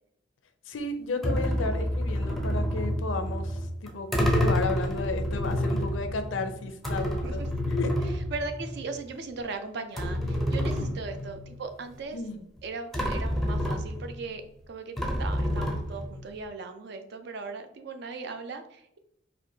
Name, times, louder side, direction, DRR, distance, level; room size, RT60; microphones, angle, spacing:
voice 1, 0.7-7.4 7.7-7.9 10.8-11.0 12.1-12.4, left 3 dB, 85° left, 8 dB, 0.5 m, -33 dB
sound 1, 1.2-9.1 9.4-9.5 10.0-11.6 12.6-12.7 12.9-14.3 15.0-16.3, equal, ahead, 0.5 m, -29 dB
voice 2, 8.3-12.2 12.6-19.0, right 4 dB, 60° right, 7 dB, 0.5 m, -38 dB
4.4 x 2.5 x 2.7 m, 0.77 s
head